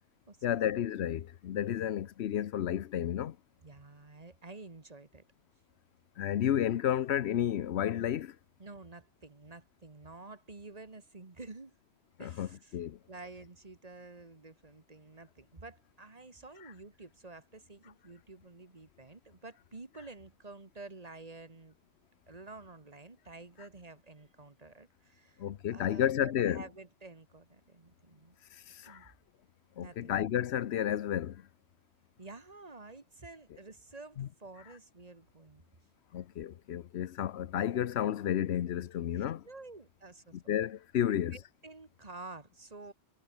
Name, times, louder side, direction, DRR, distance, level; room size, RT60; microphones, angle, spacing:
voice 1, 0.4-3.3 6.2-8.3 12.2-12.5 12.7-13.0 25.4-26.6 28.8-29.0 29.8-31.4 34.2-34.3 36.1-39.4 40.3-41.4, left 10 dB, 85° left, 1.0 m, -31 dB
voice 2, 3.6-5.2 8.6-11.8 12.2-21.8 22.3-28.4 28.8-29.1 29.8-30.2 32.2-35.6 39.2-40.6 41.0-42.9, right 3 dB, 35° right, 2.0 m, -50 dB
omnidirectional pair, 1.1 m